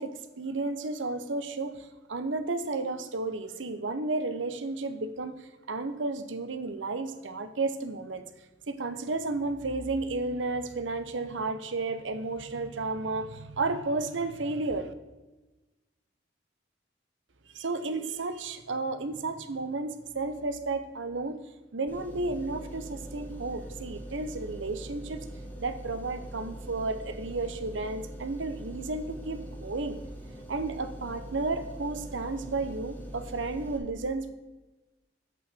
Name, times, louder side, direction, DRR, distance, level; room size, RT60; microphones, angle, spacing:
voice 1, 0.0-8.2 8.7-14.9 17.5-21.4 21.7-25.2 25.6-30.0 30.5-34.3, right 3 dB, 85° right, 10 dB, 0.8 m, -32 dB
sound 1, 21.9-33.8, right 1 dB, 10° left, 1.4 m, -42 dB
8.6 x 8.2 x 4.4 m, 1.1 s
head